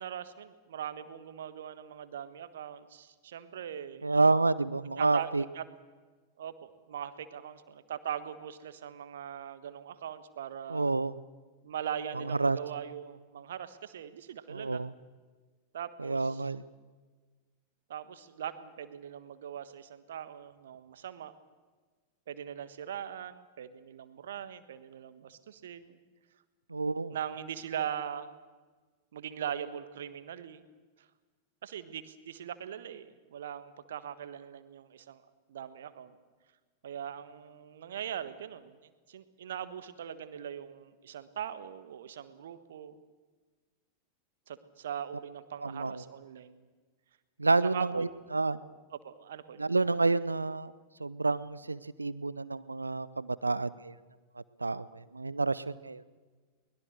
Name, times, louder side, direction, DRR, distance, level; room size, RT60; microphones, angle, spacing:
voice 1, 0.0-4.1 5.0-5.6 6.4-10.9 11.6-14.8 15.7-16.5 17.9-21.3 22.3-26.0 27.1-28.4 29.1-30.6 31.6-35.2 35.5-36.1 36.8-38.8 39.1-43.0 44.5-46.6 47.7-48.0 48.9-49.6, right 9 dB, 60° right, 13 dB, 1.4 m, -41 dB
voice 2, 4.0-5.4 10.7-11.2 12.1-12.6 14.5-14.9 16.0-16.6 26.7-27.2 45.6-46.0 47.4-48.6 49.6-50.7 51.0-53.9 54.6-56.0, right 3 dB, 80° right, 19 dB, 0.7 m, -29 dB
23.0 x 21.0 x 6.6 m, 1.4 s
figure-of-eight pair, 90°, 0 cm